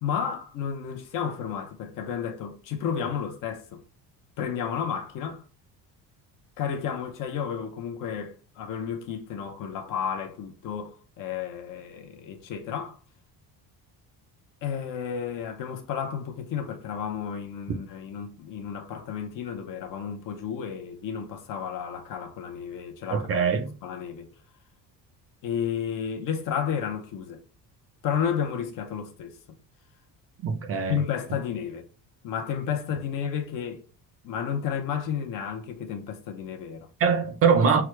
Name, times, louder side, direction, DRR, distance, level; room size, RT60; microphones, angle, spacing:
voice 1, 0.0-3.8 4.4-5.4 6.6-13.0 14.6-23.3 23.6-24.3 25.4-27.4 28.0-29.4 30.9-31.9 32.2-33.8 34.2-36.9, left 7 dB, 50° left, 0.8 m, -32 dB
voice 2, 23.1-23.7 30.4-31.0 37.0-37.8, right 6 dB, 35° right, 0.6 m, -22 dB
6.1 x 2.2 x 3.1 m
cardioid pair, 180°, 41 cm